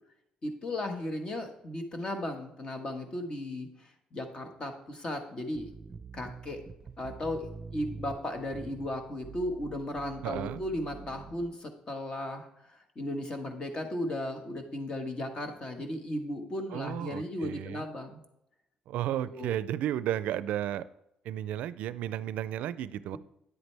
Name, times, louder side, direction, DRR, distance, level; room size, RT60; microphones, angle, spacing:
voice 1, 0.4-5.7 6.1-6.6 7.0-18.2 19.3-19.6, left 1 dB, 35° left, 6 dB, 1.5 m, -36 dB
sound 1, 5.5-11.5, right 5 dB, 30° right, 0.6 m, -46 dB
voice 2, 10.2-10.6 16.7-17.9 18.9-20.9 21.2-23.2, right 11 dB, 85° right, 16 dB, 0.4 m, -33 dB
9.6 x 8.0 x 3.4 m, 0.81 s
cardioid pair, 115°, 2 cm